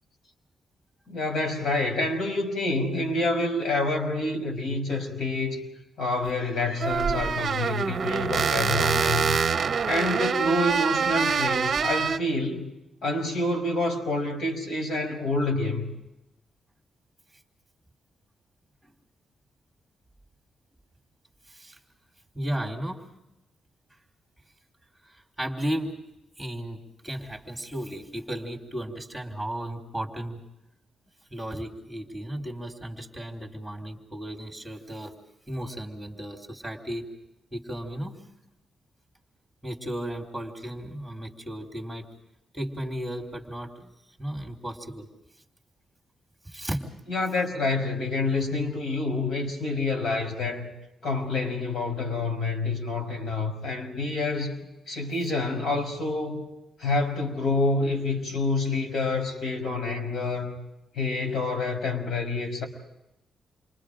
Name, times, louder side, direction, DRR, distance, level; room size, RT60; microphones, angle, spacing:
voice 1, 1.1-5.6 6.0-9.4 9.9-12.7 13.0-15.9 47.1-50.7 51.0-54.6 54.9-56.5 56.8-60.5 61.0-62.6, left 2 dB, 65° left, 3 dB, 5.5 m, -27 dB
sound 1, 6.2-6.3 6.8-12.2, right 6 dB, 40° right, 0.8 m, -25 dB
voice 2, 21.5-21.8 22.3-23.0 25.0-25.9 26.4-26.8 27.0-30.4 31.3-35.1 35.5-37.1 37.5-38.2 39.6-42.0 42.5-43.9 44.2-45.1 46.4-46.9, right 1 dB, ahead, 1 dB, 3.7 m, -34 dB
29.0 x 24.5 x 5.1 m, 0.91 s
cardioid pair, 140°, 0 cm